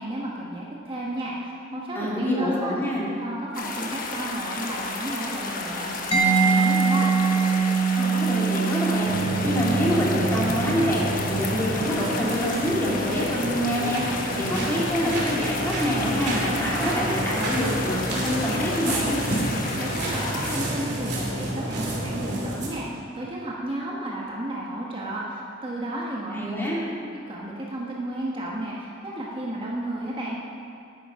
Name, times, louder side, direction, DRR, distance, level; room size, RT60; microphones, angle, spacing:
voice 1, 0.0-2.8 3.2-7.1 19.8-26.7 27.3-30.4, right 1 dB, 30° right, -4 dB, 1.4 m, -32 dB
voice 2, 1.9-3.1 7.9-11.0 11.3-19.2 26.3-26.8, equal, 10° left, -6 dB, 2.6 m, -26 dB
sound 1, 3.5-20.6, left 3 dB, 50° left, 1.2 m, -32 dB
Mallet percussion, 6.1-13.6, right 5 dB, 30° left, 1.2 m, -25 dB
sound 2, 9.0-22.7, right 1 dB, 60° right, 2.7 m, -29 dB
11.0 x 9.3 x 5.8 m, 2.5 s
head